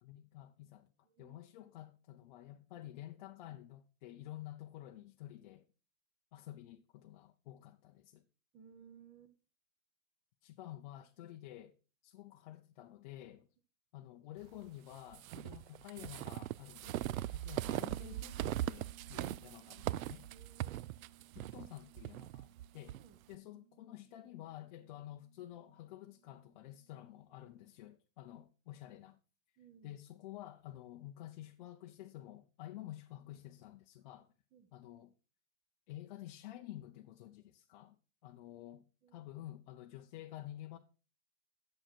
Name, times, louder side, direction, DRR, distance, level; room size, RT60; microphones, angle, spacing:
voice 1, 0.0-0.9 1.2-5.7 6.3-8.2 10.4-11.7 12.0-13.5 13.9-20.3 21.4-23.0 23.3-29.2 29.8-34.3 34.7-35.1 35.9-38.0 38.2-38.8 39.1-40.8, left 13 dB, 35° left, 0.5 m, -50 dB
voice 2, 1.0-1.4 8.5-9.3 11.2-11.3 20.3-21.1 22.9-23.2 29.6-30.0 34.5-34.7 39.0-39.3, right 7 dB, 15° right, 0.5 m, -60 dB
sound 1, 15.1-23.0, right 14 dB, 90° right, 0.5 m, -40 dB
Bass guitar, 17.8-27.5, right 12 dB, 75° right, 3.4 m, -64 dB
9.0 x 7.4 x 4.4 m
supercardioid pair, 160°, 40 cm